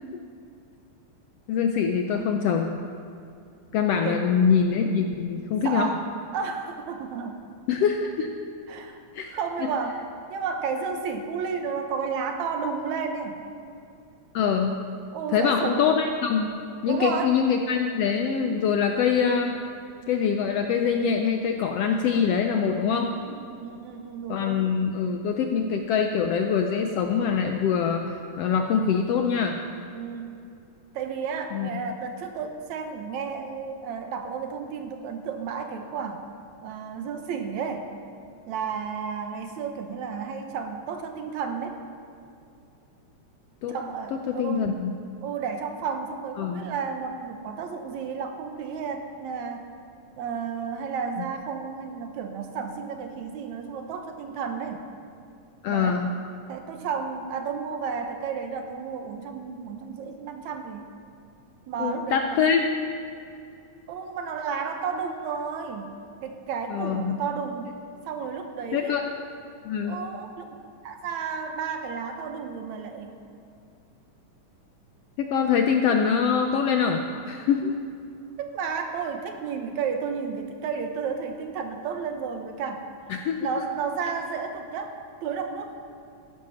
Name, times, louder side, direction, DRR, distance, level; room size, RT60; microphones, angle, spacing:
voice 1, 1.5-2.7 3.7-5.9 7.7-8.3 9.1-9.3 9.6-9.7 14.3-14.8 15.3-16.5 16.8-19.6 20.1-23.1 24.3-29.6 31.5-31.8 43.6-43.8 44.1-44.9 46.4-46.6 55.6-56.1 61.8-62.7 66.7-67.2 68.7-69.1 69.6-70.0 75.2-77.7 83.1-83.5, left 6 dB, 80° left, 4 dB, 1.4 m, -24 dB
voice 2, 5.7-6.1 6.3-7.4 8.7-9.0 9.3-10.0 10.3-13.4 15.1-15.9 16.9-17.4 22.9-24.7 29.9-30.4 30.9-36.2 36.6-37.9 38.5-41.8 43.7-44.7 45.2-49.7 50.2-54.8 55.7-56.0 56.5-60.9 61.7-62.4 63.9-65.9 66.2-67.7 68.1-69.0 69.8-70.6 70.8-73.2 78.4-82.8 83.4-85.0 85.2-85.8, right 6 dB, 75° right, 5 dB, 2.3 m, -32 dB
14.0 x 11.0 x 5.7 m, 2.6 s
omnidirectional pair, 3.4 m